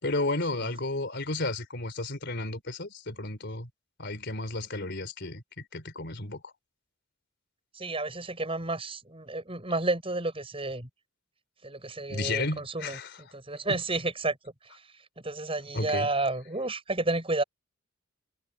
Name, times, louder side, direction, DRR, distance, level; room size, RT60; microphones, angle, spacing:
voice 1, 0.0-3.7 4.0-6.5 12.1-13.1 15.7-16.1, left 2 dB, 55° left, 4.0 m, -33 dB
voice 2, 7.7-10.9 11.6-17.4, right 2 dB, 25° right, 7.1 m, -31 dB
head